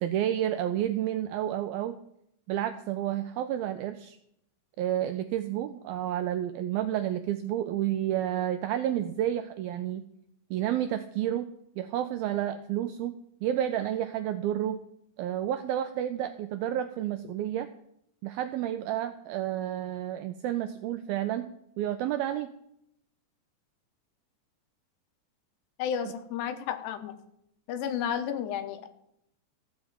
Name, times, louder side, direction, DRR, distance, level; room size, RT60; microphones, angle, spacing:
voice 1, 0.0-2.0 2.5-4.2 4.8-10.0 10.5-11.5 11.8-14.8 15.2-17.7 18.2-21.5 21.8-22.5, right 11 dB, 85° right, 9 dB, 2.1 m, -30 dB
voice 2, 25.8-27.2 27.7-28.9, left 8 dB, 80° left, 9 dB, 3.2 m, -32 dB
14.0 x 6.4 x 8.8 m, 0.77 s
omnidirectional pair, 4.9 m